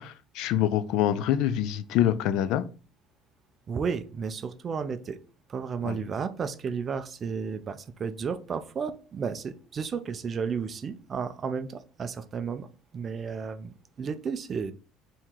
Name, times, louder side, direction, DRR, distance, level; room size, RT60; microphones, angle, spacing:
voice 1, 0.0-2.6 5.8-6.0, left 11 dB, 65° left, 0.4 m, -25 dB
voice 2, 3.7-5.2 5.5-12.7 12.9-14.7, right 6 dB, 30° right, 0.4 m, -33 dB
3.7 x 2.9 x 4.5 m
cardioid pair, 160°, 0 cm